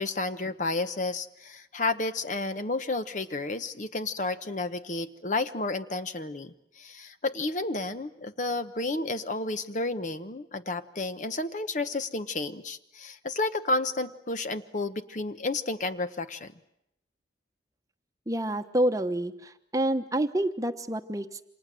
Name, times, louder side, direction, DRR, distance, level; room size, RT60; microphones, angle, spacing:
voice 1, 0.0-16.5, left 2 dB, 45° left, 11 dB, 1.1 m, -31 dB
voice 2, 18.3-21.3, right 1 dB, 20° right, 8 dB, 1.0 m, -28 dB
29.0 x 26.0 x 7.6 m, 0.82 s
head